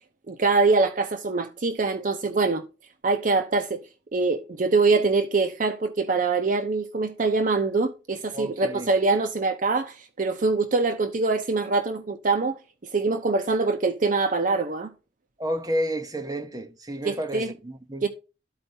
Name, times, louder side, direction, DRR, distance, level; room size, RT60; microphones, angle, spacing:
voice 1, 0.3-2.6 3.0-3.8 4.1-12.6 12.9-14.9 17.0-17.5 18.0-18.1, right 3 dB, 45° right, 0.6 m, -24 dB
voice 2, 8.3-8.9 15.4-18.1, equal, 20° right, 1.0 m, -31 dB
13.0 x 4.4 x 2.7 m
head